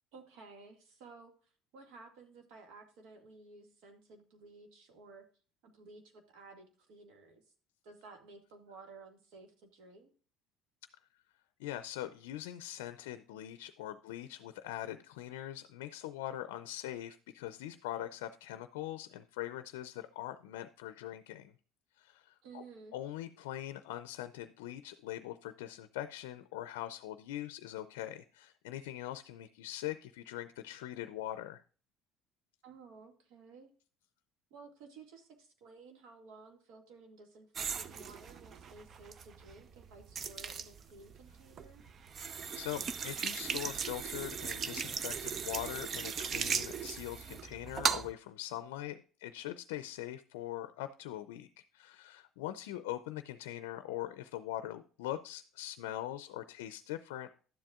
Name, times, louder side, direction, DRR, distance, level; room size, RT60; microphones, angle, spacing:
voice 1, 0.1-5.2 5.6-7.4 7.8-10.1 22.4-23.0 32.6-33.7 34.5-41.8, right 4 dB, 75° right, 4 dB, 2.0 m, -55 dB
voice 2, 11.6-21.5 22.0-22.6 22.9-31.6 42.5-51.5 51.7-57.3, left 13 dB, 85° left, 11 dB, 0.4 m, -42 dB
sound 1, 37.6-48.1, right 6 dB, 45° right, 0.6 m, -38 dB
12.0 x 7.5 x 2.4 m, 0.39 s
supercardioid pair, 80°, 0 cm